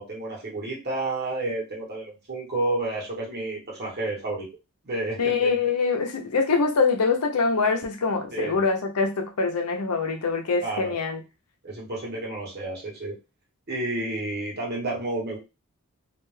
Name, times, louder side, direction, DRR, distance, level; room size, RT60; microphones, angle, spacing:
voice 1, 0.0-4.5 4.8-5.5 8.3-8.6 10.6-11.0 11.6-13.2 13.7-15.4, right 2 dB, 45° right, 1.0 m, -30 dB
voice 2, 5.2-11.2, left 4 dB, 85° left, 0.6 m, -24 dB
2.5 x 2.2 x 3.1 m
head